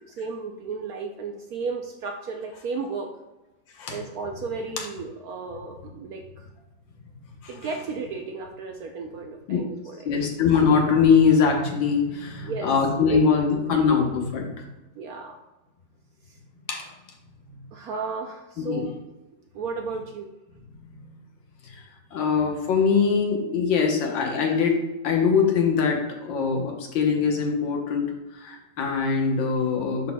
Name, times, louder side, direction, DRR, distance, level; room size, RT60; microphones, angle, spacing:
voice 1, 0.0-3.1 3.9-6.5 7.5-10.3 12.4-12.7 13.1-14.0 15.0-15.4 16.3-16.4 17.7-19.0 19.5-20.3, right 4 dB, 70° right, 3 dB, 0.9 m, -34 dB
voice 2, 10.1-14.6 16.7-16.8 17.5-17.6 18.6-18.9 21.6-21.8 22.1-30.1, left 5 dB, 80° left, 1 dB, 1.8 m, -22 dB
11.0 x 4.2 x 2.2 m, 1.0 s
omnidirectional pair, 2.0 m